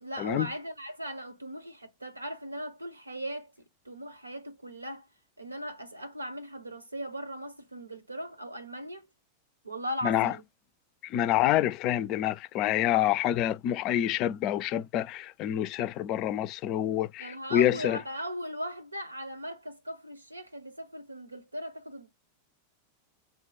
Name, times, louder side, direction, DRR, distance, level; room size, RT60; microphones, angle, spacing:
voice 1, 0.0-3.5 3.8-5.1 5.4-9.1 9.6-10.4 17.2-22.1, equal, 85° right, 1.1 m, -38 dB
voice 2, 10.0-10.3 11.0-18.0, left 12 dB, 40° left, 0.4 m, -27 dB
3.6 x 2.3 x 4.2 m
figure-of-eight pair, 90°, 0 cm